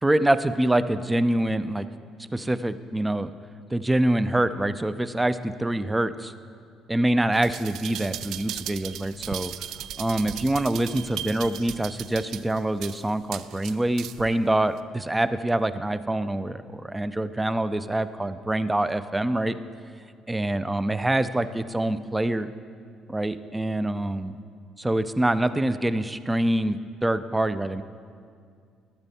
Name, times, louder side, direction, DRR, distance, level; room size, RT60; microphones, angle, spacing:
voice 1, 0.0-1.9 2.3-3.3 3.7-6.3 6.9-9.5 10.0-19.6 20.3-22.5 23.1-24.4 24.8-27.8, right 1 dB, 15° right, 13 dB, 0.5 m, -25 dB
sound 1, 7.3-14.3 14.8-14.9, right 11 dB, 70° right, 0.3 m, -37 dB
12.0 x 8.8 x 4.2 m, 2.2 s
hypercardioid pair, 65°, 0 cm